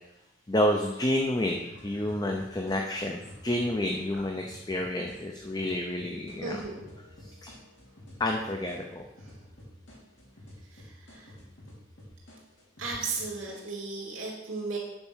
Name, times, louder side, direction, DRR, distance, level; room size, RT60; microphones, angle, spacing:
voice 1, 0.5-6.6 7.2-7.5 8.2-9.1, left 1 dB, 20° left, 2 dB, 0.6 m, -29 dB
sound 1, 1.3-13.6, left 1 dB, 60° left, 3.1 m, -50 dB
voice 2, 6.4-6.8 10.7-11.3 12.8-14.8, right 3 dB, 85° right, -2 dB, 2.8 m, -35 dB
8.8 x 4.6 x 6.3 m, 0.93 s
head